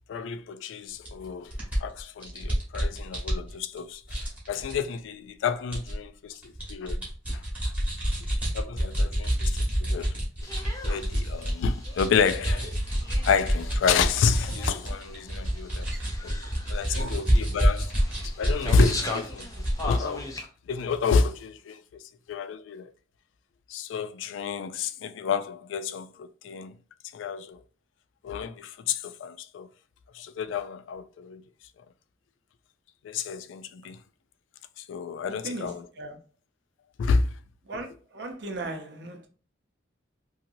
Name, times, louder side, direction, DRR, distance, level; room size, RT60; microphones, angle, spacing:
voice 1, 0.1-1.5 1.8-4.2 4.5-7.4 8.5-10.1 10.8-12.7 13.2-15.9 16.2-16.4 16.7-17.9 18.2-20.3 20.7-22.0 22.3-22.9 23.7-26.8 27.1-27.6 28.2-29.7 30.1-31.4 33.0-34.0 34.9-35.9 37.0-37.3, left 5 dB, 80° left, 0.3 m, -29 dB
sound 1, 1.1-1.2 1.5-3.8 4.1-4.7 5.7-5.9 6.3-11.5 11.8-19.0 19.3-19.9, equal, 5° right, 1.1 m, -27 dB
sound 2, 10.4-20.5, left 2 dB, 20° left, 0.5 m, -40 dB
voice 2, 38.1-39.3, right 2 dB, 60° right, 0.6 m, -36 dB
2.8 x 2.8 x 2.6 m
head